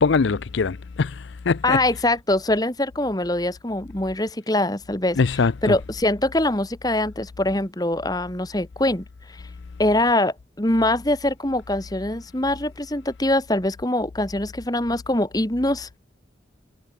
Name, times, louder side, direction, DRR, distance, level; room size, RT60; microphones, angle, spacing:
voice 1, 0.0-1.1 1.5-1.8 5.2-5.7, left 4 dB, 75° left, 0.5 m, -21 dB
voice 2, 1.6-5.2 5.6-9.0 9.3-9.4 9.8-16.0, left 1 dB, 20° left, 1.6 m, -23 dB
head